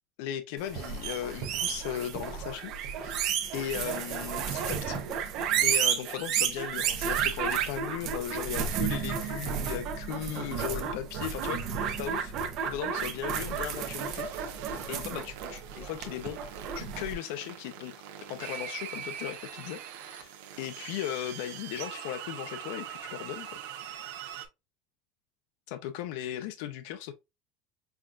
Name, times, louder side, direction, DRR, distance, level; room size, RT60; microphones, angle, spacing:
voice 1, 0.2-2.7 3.0-5.0 5.6-12.3 12.7-14.3 14.9-17.9 18.3-23.6 25.7-27.1, left 11 dB, 60° left, 0.4 m, -37 dB
sound 1, 0.6-17.1, right 8 dB, 40° right, 0.7 m, -32 dB
sound 2, 13.3-24.5, right 9 dB, 85° right, 0.8 m, -43 dB
5.6 x 2.3 x 2.4 m
cardioid pair, 175°, 0 cm